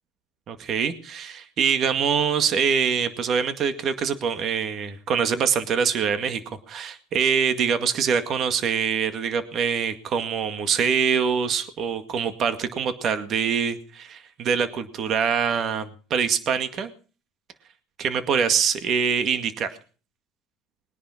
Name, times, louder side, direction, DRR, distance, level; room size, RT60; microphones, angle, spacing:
voice 1, 0.5-6.4 6.7-16.9 18.0-19.7, right 7 dB, 45° right, 9 dB, 2.0 m, -24 dB
21.5 x 10.0 x 5.9 m, 0.39 s
supercardioid pair, 115°, 0 cm